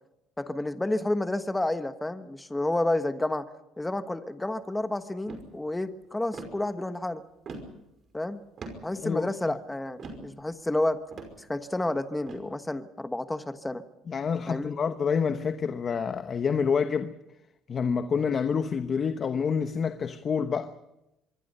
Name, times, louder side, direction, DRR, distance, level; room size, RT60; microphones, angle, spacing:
voice 1, 0.4-3.5 3.8-7.2 8.1-8.4 8.8-11.0 11.5-13.8 14.5-14.8, left 1 dB, 10° left, 1.3 m, -30 dB
sound 1, 5.3-5.5 6.3-6.6 7.5-7.8 8.6-8.9 10.0-10.3 11.1-11.4 12.3-12.4, right 3 dB, 40° right, 5.4 m, -40 dB
voice 2, 9.0-9.6 14.1-17.1 17.7-20.7, left 6 dB, 35° left, 1.0 m, -28 dB
25.5 x 23.5 x 5.5 m
cardioid pair, 135°, 0 cm